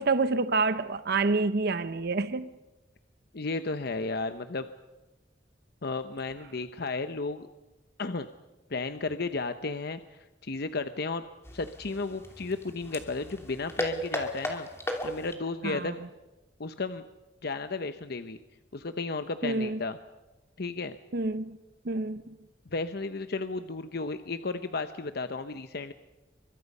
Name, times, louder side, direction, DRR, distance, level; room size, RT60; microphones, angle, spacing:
voice 1, 0.0-2.5 15.6-15.9 19.4-19.8 21.1-21.6 21.8-22.3, right 3 dB, 60° right, 0.8 m, -28 dB
voice 2, 3.3-4.7 5.8-7.5 8.0-8.3 8.7-11.2 11.5-14.7 15.0-16.0 16.6-17.0 17.4-18.4 18.7-20.0 20.6-21.0 22.7-25.9, left 3 dB, 60° left, 0.9 m, -33 dB
sound 1, 11.4-15.5, equal, 15° left, 2.8 m, -36 dB
29.5 x 24.0 x 5.5 m
head